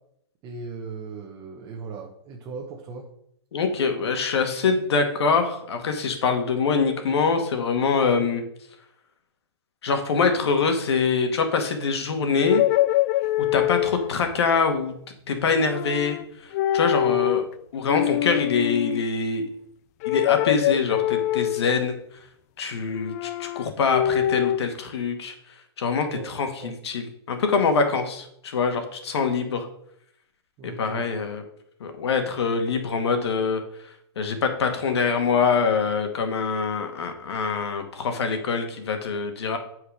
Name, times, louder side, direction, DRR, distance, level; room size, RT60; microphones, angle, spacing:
voice 1, 0.4-3.1 13.2-13.3 17.0-17.2 26.1-26.3 26.6-26.7 30.6-31.1, right 4 dB, 25° right, 0 dB, 1.2 m, -38 dB
voice 2, 3.5-8.4 9.8-12.6 13.5-14.9 15.3-16.2 16.7-17.4 17.7-19.5 20.1-21.9 22.6-25.4 25.8-29.7 30.6-31.4 31.8-33.6 34.2-39.6, left 5 dB, 75° left, 6 dB, 1.9 m, -24 dB
sound 1, 12.4-14.2 15.5-16.3 16.5-17.5 17.8-19.0 20.0-21.8 22.9-24.6, left 13 dB, 35° left, 0.4 m, -24 dB
8.3 x 4.7 x 6.5 m, 0.72 s
hypercardioid pair, 145°, 14 cm